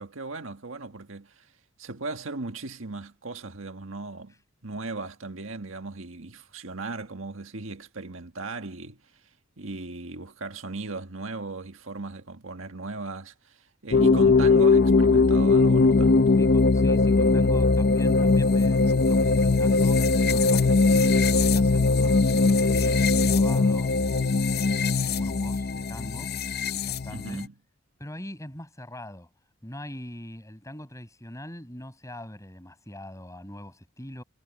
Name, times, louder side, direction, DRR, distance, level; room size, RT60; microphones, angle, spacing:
voice 1, 0.0-1.5 1.8-4.3 4.6-9.0 9.6-16.3 27.1-27.6, right 3 dB, 75° right, 1.7 m, -37 dB
sound 1, 13.9-27.4, left 3 dB, 50° left, 0.7 m, -20 dB
voice 2, 16.4-24.5 25.1-26.3 26.7-27.4 28.0-29.3 29.6-34.2, left 1 dB, 15° left, 7.1 m, -42 dB
head